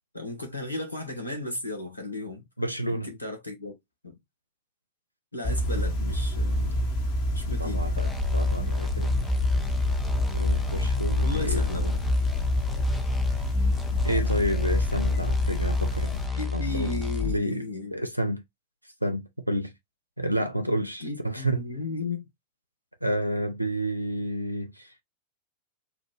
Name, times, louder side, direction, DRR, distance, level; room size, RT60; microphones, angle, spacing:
voice 1, 0.1-2.4 2.9-3.7 4.0-4.1 5.3-6.8 7.3-7.9 11.2-12.0 16.3-18.0 21.0-22.3, left 2 dB, 85° left, 1.3 m, -35 dB
voice 2, 2.6-3.1 7.6-9.2 10.3-11.6 14.0-16.2 16.5-17.0 17.3-18.4 18.8-19.7 20.2-21.7 23.0-24.9, right 1 dB, 90° right, 0.5 m, -30 dB
sound 1, 5.4-16.3, equal, 45° left, 1.2 m, -27 dB
sound 2, 8.0-17.4, left 5 dB, 5° left, 0.6 m, -30 dB
3.7 x 2.5 x 3.2 m
figure-of-eight pair, 90°, 0 cm